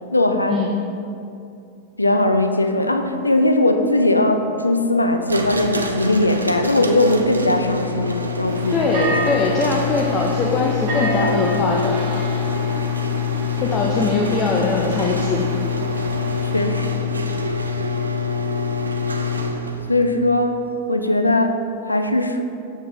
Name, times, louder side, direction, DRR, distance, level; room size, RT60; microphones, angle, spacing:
voice 1, 0.1-0.6 2.0-9.1 16.4-17.2 19.9-22.4, left 1 dB, 85° left, 7 dB, 0.3 m, -19 dB
sound 1, 5.3-19.9, left 4 dB, 80° right, 0.4 m, -25 dB
sound 2, 8.5-16.6, equal, 45° right, 1.5 m, -31 dB
voice 2, 8.7-12.1 13.6-15.5, left 3 dB, 25° left, -1 dB, 0.5 m, -21 dB
6.9 x 6.1 x 2.7 m, 2.6 s
figure-of-eight pair, 90°, 0 cm